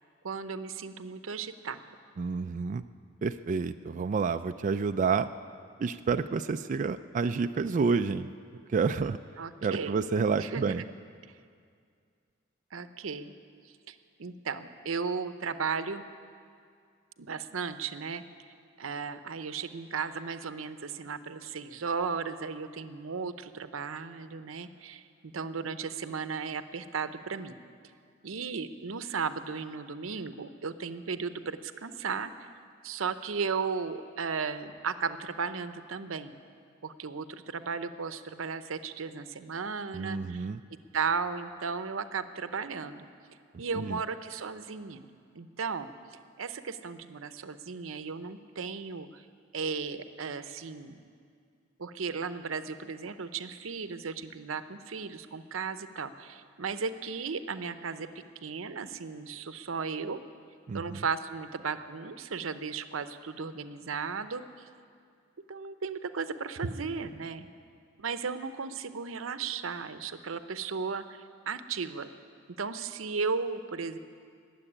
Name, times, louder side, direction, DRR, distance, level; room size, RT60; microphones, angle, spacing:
voice 1, 0.2-1.8 9.4-10.0 10.3-10.9 12.7-13.3 13.9-16.0 17.2-18.2 18.8-27.6 28.2-32.3 32.8-36.3 36.8-40.5 40.9-43.1 43.6-45.1 45.4-45.9 46.4-49.2 49.5-51.0 51.8-58.1 58.4-60.2 60.7-64.4 65.5-67.5 68.0-72.1 72.6-74.0, right 5 dB, 90° right, 11 dB, 0.7 m, -35 dB
voice 2, 2.2-2.8 3.2-5.3 5.8-8.3 8.7-9.2 9.6-10.8 39.9-40.6 43.8-44.0 60.7-61.0, right 5 dB, 40° right, 9 dB, 0.3 m, -29 dB
18.5 x 7.7 x 9.9 m, 2.2 s
head